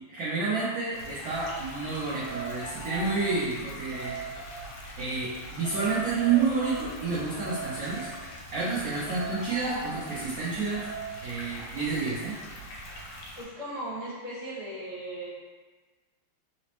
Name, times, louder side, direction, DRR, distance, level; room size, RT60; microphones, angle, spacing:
voice 1, 0.1-4.2 5.0-8.1 8.5-10.9 11.2-12.4, right 4 dB, 80° right, -7 dB, 0.8 m, -29 dB
sound 1, 0.9-13.4, equal, 90° left, 1.5 m, -43 dB
sound 2, 2.2-3.5 3.9-4.7 5.6-7.1 7.4-8.3 9.1-10.3 10.8-11.4, right 4 dB, 55° left, 0.7 m, -40 dB
voice 2, 13.4-15.3, right 1 dB, 50° right, -11 dB, 1.7 m, -37 dB
4.0 x 2.0 x 2.9 m, 1.3 s
omnidirectional pair, 2.3 m